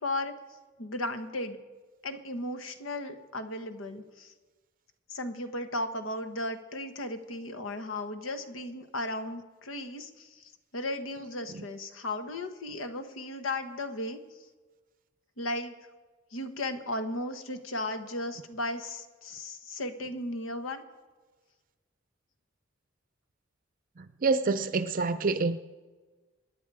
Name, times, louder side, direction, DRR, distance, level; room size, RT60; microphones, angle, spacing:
voice 1, 0.0-0.3 0.8-1.6 2.0-4.3 5.1-10.4 10.7-14.2 15.4-15.7 16.3-20.8, left 1 dB, 85° left, 8 dB, 1.3 m, -35 dB
voice 2, 24.0-25.6, right 4 dB, 45° right, 12 dB, 0.5 m, -27 dB
26.5 x 10.0 x 4.8 m, 1.3 s
head